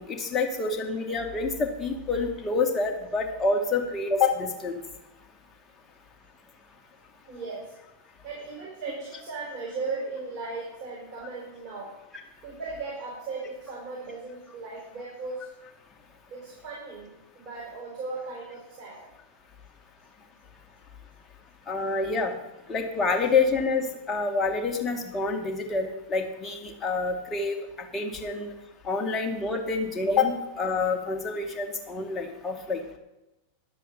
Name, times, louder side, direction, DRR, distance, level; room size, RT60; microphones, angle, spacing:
voice 1, 0.0-4.8 21.7-22.3 22.7-28.5 28.8-32.8, left 4 dB, 20° left, 3 dB, 1.9 m, -27 dB
voice 2, 7.3-7.7 8.2-11.9 12.4-15.5 16.3-17.1 17.3-19.0, right 3 dB, 40° right, -5 dB, 5.0 m, -37 dB
11.5 x 7.5 x 6.9 m, 0.96 s
figure-of-eight pair, 90°, 0 cm